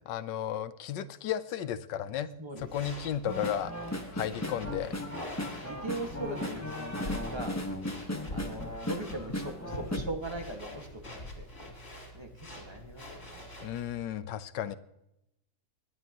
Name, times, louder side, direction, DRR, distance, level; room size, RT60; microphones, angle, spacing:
voice 1, 0.1-2.3 2.6-3.7 4.1-4.9 13.6-14.8, left 10 dB, 80° left, 12 dB, 1.4 m, -34 dB
voice 2, 2.4-2.9 4.3-4.4 5.5-7.6 8.3-11.5 12.1-13.4 14.7-14.8, right 2 dB, 15° right, 3 dB, 1.7 m, -40 dB
sound 1, 2.6-14.0, left 1 dB, 35° left, 4.3 m, -44 dB
sound 2, 3.2-10.0, left 1 dB, 10° left, 1.1 m, -37 dB
26.5 x 11.0 x 3.0 m, 0.84 s
omnidirectional pair, 1.9 m